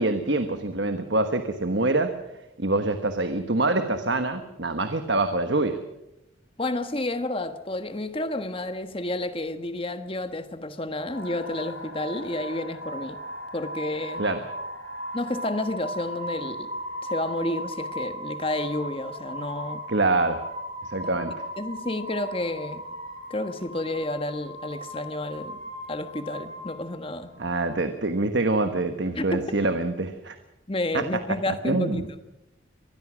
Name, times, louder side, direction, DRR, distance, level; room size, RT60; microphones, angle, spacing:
voice 1, 0.0-2.1 2.6-5.8 14.2-14.4 19.9-20.4 20.8-21.3 27.4-30.4 30.9-31.0 31.5-32.0, right 2 dB, 60° right, 8 dB, 1.3 m, -25 dB
voice 2, 6.6-13.2 13.5-14.3 15.1-16.7 17.0-19.8 21.6-22.8 23.3-25.6 25.9-27.3 29.1-29.4 30.7-32.1, left 1 dB, 25° left, 9 dB, 1.4 m, -30 dB
sound 1, 11.1-27.7, equal, 90° left, 3.8 m, -37 dB
24.5 x 20.0 x 6.3 m, 0.92 s
head